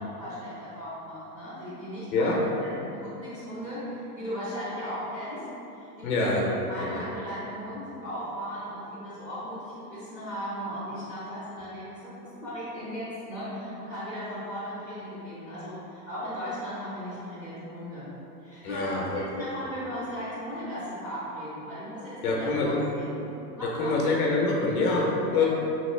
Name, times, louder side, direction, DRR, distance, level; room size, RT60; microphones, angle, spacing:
voice 1, 0.0-5.4 5.7-6.3 6.7-18.1 18.4-23.2 23.5-24.0 25.3-25.4, equal, 15° right, -12 dB, 0.7 m, -37 dB
voice 2, 6.0-6.4 6.8-7.0 18.6-19.2 22.2-22.8 23.6-25.4, left 3 dB, 60° left, -2 dB, 0.7 m, -25 dB
3.0 x 2.6 x 3.2 m, 3.0 s
supercardioid pair, 160°, 49 cm